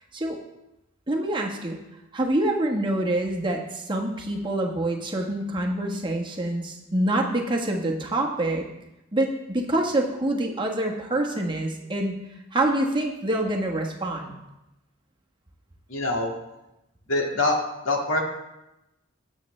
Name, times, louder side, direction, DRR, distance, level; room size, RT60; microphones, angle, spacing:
voice 1, 1.1-1.8 2.1-8.6 9.1-12.1 12.5-14.3, right 1 dB, 20° right, 0 dB, 1.2 m, -26 dB
voice 2, 15.9-16.3 17.1-17.6 17.8-18.2, left 2 dB, 80° left, 0 dB, 2.0 m, -24 dB
16.5 x 7.4 x 3.2 m, 0.94 s
head